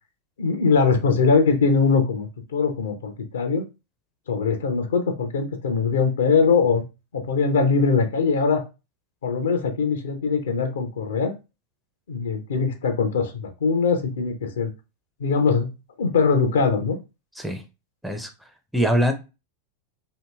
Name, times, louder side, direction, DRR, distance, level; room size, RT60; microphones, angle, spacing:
voice 1, 0.4-3.7 4.3-6.8 7.1-8.6 9.2-11.3 12.1-14.7 15.2-15.7 16.0-17.0, left 5 dB, 65° left, 0.5 m, -21 dB
voice 2, 18.7-19.1, equal, ahead, 0.4 m, -22 dB
2.8 x 2.6 x 2.2 m
figure-of-eight pair, 90°, 0 cm